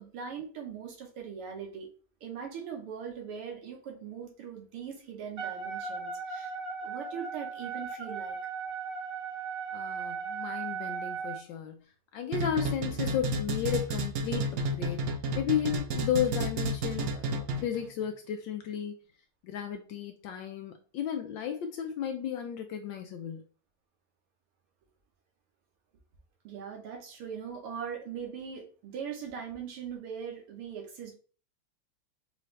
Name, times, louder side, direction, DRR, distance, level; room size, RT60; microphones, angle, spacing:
voice 1, 0.0-1.9 2.2-6.5 6.8-8.4 26.4-31.1, right 7 dB, 85° right, 2.1 m, -40 dB
Wind instrument woodwind instrument, 5.4-11.4, right 5 dB, 50° right, 1.8 m, -37 dB
voice 2, 9.7-11.8 12.1-18.9 19.4-23.4, left 9 dB, 75° left, 1.1 m, -34 dB
sound 1, 12.3-17.8, right 1 dB, 70° right, 0.8 m, -31 dB
5.6 x 2.6 x 3.2 m
omnidirectional pair, 2.4 m